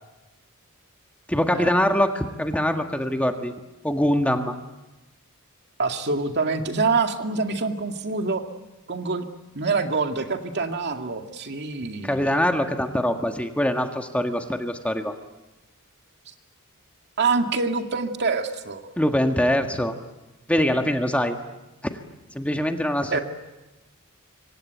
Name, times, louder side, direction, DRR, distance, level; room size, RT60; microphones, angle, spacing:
voice 1, 1.3-3.5 3.8-4.6 12.0-15.1 19.0-20.0 20.5-21.4 21.8-22.0 22.3-23.2, equal, 5° left, 5 dB, 1.6 m, -23 dB
voice 2, 5.8-8.4 8.9-9.3 9.5-12.3 16.3-16.4 17.2-18.9 23.1-23.2, right 4 dB, 50° right, 5 dB, 2.2 m, -25 dB
26.5 x 24.0 x 9.2 m, 1.0 s
head